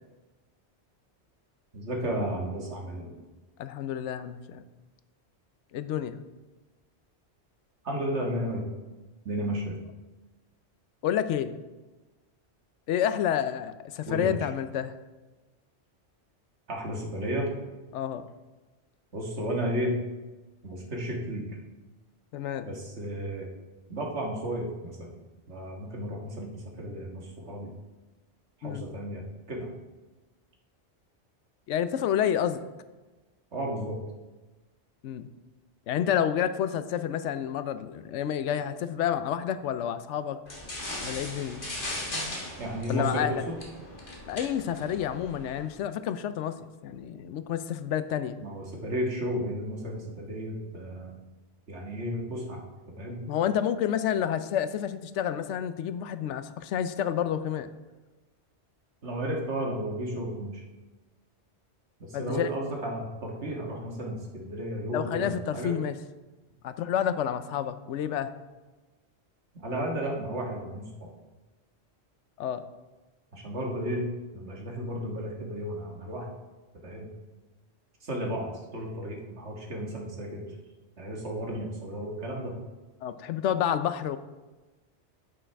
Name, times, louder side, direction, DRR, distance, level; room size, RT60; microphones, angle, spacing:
voice 1, 1.7-3.1 7.8-8.6 9.3-9.8 14.1-14.4 16.7-17.5 19.1-19.9 20.6-21.5 22.6-23.5 23.9-25.2 25.5-27.7 28.6-29.2 29.5-29.7 33.5-34.0 42.6-43.6 48.4-51.2 51.7-52.6 53.0-53.2 59.0-60.6 62.1-65.7 69.6-71.1 73.3-74.0 74.3-76.3 76.8-77.1 78.0-80.4 81.0-82.5, equal, 75° right, -1 dB, 1.9 m, -33 dB
voice 2, 3.6-4.6 5.7-6.2 11.0-11.6 12.9-14.9 17.9-18.2 22.3-22.7 28.6-28.8 31.7-32.6 35.0-35.3 35.9-40.4 41.0-41.6 42.9-43.4 44.3-46.6 46.8-48.4 53.3-57.7 62.1-62.5 64.9-65.9 66.6-68.3 72.4-72.6 83.0-84.2, left 9 dB, 90° left, 12 dB, 0.9 m, -29 dB
Return shopping cart, 40.5-45.7, left 1 dB, 50° left, 1.8 m, -38 dB
8.7 x 8.7 x 3.4 m, 1.2 s
omnidirectional pair, 1.2 m